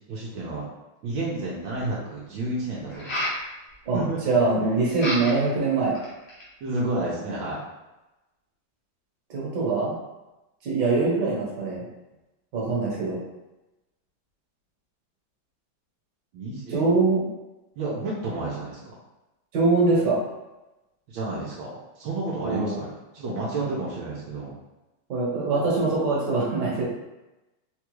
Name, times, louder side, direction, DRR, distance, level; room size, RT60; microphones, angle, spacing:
voice 1, 0.1-0.6 1.0-3.2 3.9-4.2 4.6-4.8 6.6-7.6 16.3-17.0 17.8-18.8 21.1-24.6, right 2 dB, 80° right, -6 dB, 1.5 m, -31 dB
sound 1, 1.2-1.3 2.9-3.4 4.9-5.5 5.9-6.5, left 1 dB, 50° left, 0.8 m, -30 dB
voice 2, 3.9-6.0 9.3-9.9 10.6-11.8 12.5-13.2 16.7-17.2 19.5-20.2 22.4-22.8 25.1-26.9, right 3 dB, 65° right, -5 dB, 1.6 m, -23 dB
3.9 x 2.3 x 3.0 m, 1.0 s
omnidirectional pair, 2.1 m